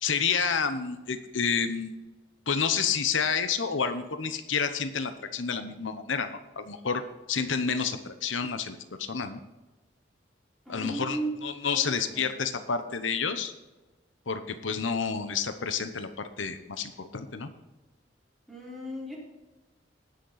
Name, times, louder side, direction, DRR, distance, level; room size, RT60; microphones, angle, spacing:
voice 1, 0.0-2.0 2.5-7.0 7.3-9.4 10.7-13.5 14.3-17.5, left 6 dB, 90° left, 9 dB, 0.9 m, -29 dB
voice 2, 10.6-11.3 11.7-12.3 18.5-19.2, right 1 dB, ahead, -5 dB, 4.2 m, -35 dB
19.0 x 6.6 x 4.1 m, 1.1 s
head